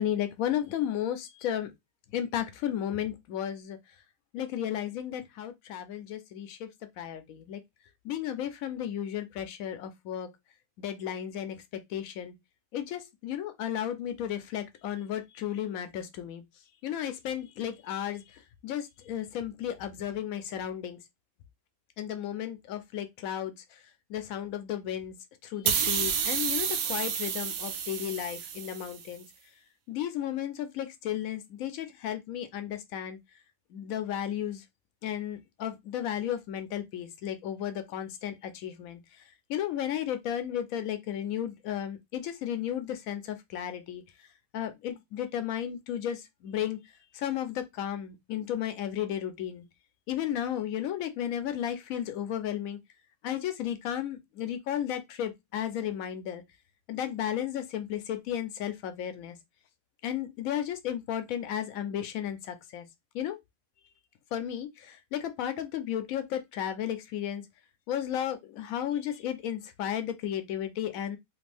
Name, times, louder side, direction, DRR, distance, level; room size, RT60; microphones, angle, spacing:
voice 1, 0.0-1.7 2.1-3.8 4.3-6.7 7.0-7.6 8.0-10.3 10.8-11.6 11.9-12.3 12.7-16.4 16.8-21.0 22.0-23.5 24.1-25.2 25.4-29.3 29.9-33.2 33.7-34.6 35.0-39.0 39.5-44.0 44.5-46.8 47.1-49.7 50.1-52.8 53.2-56.4 56.9-59.4 60.0-62.9 63.1-63.4 64.3-67.4 67.9-71.2, left 10 dB, 90° left, 1.0 m, -34 dB
sound 1, 25.7-29.0, right 7 dB, 90° right, 1.1 m, -30 dB
2.9 x 2.5 x 3.2 m
omnidirectional pair, 1.4 m